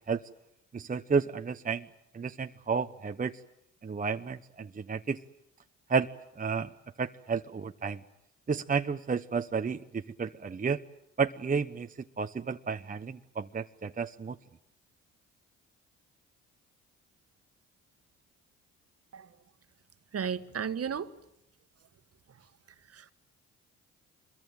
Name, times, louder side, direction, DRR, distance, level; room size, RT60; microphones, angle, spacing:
voice 1, 0.7-1.9 2.1-3.4 3.8-5.2 5.9-6.1 6.4-6.7 7.0-8.0 8.5-10.8 11.2-11.9 12.2-14.4, right 5 dB, 25° right, 0.9 m, -31 dB
voice 2, 20.1-21.1 22.9-23.1, right 7 dB, 45° right, 1.5 m, -34 dB
25.5 x 22.0 x 9.1 m
hypercardioid pair, 60°, 33 cm